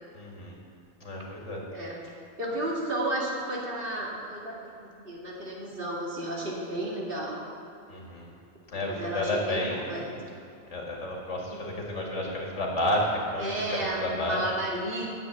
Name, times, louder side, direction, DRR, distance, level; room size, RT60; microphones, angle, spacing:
voice 1, 0.1-0.6 1.0-1.6 7.9-8.3 8.7-10.3 10.7-14.4, left 1 dB, 90° left, -2 dB, 2.3 m, -31 dB
voice 2, 2.4-4.5 4.8-7.4 8.8-10.1 11.5-11.6 13.4-15.1, right 1 dB, 50° right, -4 dB, 2.4 m, -32 dB
10.5 x 7.5 x 8.1 m, 2.6 s
omnidirectional pair, 1.2 m